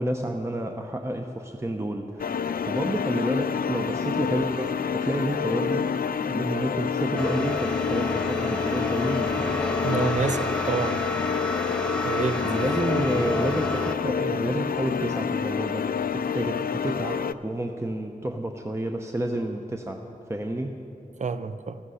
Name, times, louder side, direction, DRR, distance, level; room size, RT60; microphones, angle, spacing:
voice 1, 0.0-5.9 6.2-9.3 12.4-15.9 16.1-20.8, right 1 dB, 20° right, 4 dB, 0.8 m, -30 dB
sound 1, 2.2-17.3, left 7 dB, 80° left, 0.4 m, -28 dB
sound 2, 7.2-13.9, left 1 dB, 5° left, 1.2 m, -30 dB
voice 2, 9.8-11.0 12.0-12.5 21.2-21.8, right 4 dB, 55° right, 13 dB, 0.5 m, -28 dB
14.5 x 13.0 x 5.6 m, 2.6 s
wide cardioid pair, 60°, 15 cm